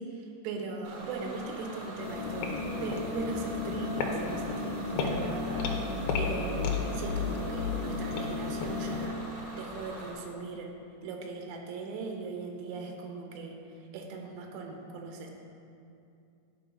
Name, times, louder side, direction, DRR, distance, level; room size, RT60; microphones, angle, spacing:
voice 1, 0.0-10.7 11.0-13.5 13.9-15.3, right 4 dB, 80° right, 2 dB, 3.1 m, -39 dB
Bus / Engine, 0.8-10.1, right 1 dB, 65° right, 4.2 m, -44 dB
sound 1, 2.0-9.1, left 4 dB, 75° left, 2.7 m, -32 dB
10.5 x 5.5 x 5.3 m, 2.6 s
omnidirectional pair, 5.0 m